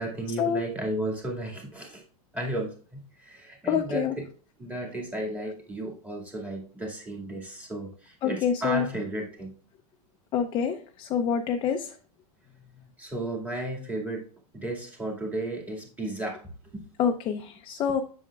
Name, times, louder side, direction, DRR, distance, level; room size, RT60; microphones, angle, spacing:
voice 1, 0.0-2.0 2.3-4.2 4.6-9.5 13.0-16.9, right 1 dB, 10° right, -1 dB, 2.2 m, -34 dB
voice 2, 3.7-4.1 8.2-8.8 10.3-11.9 17.0-18.0, left 7 dB, 25° left, 5 dB, 0.6 m, -26 dB
7.6 x 7.1 x 2.4 m, 0.39 s
supercardioid pair, 145°, 19 cm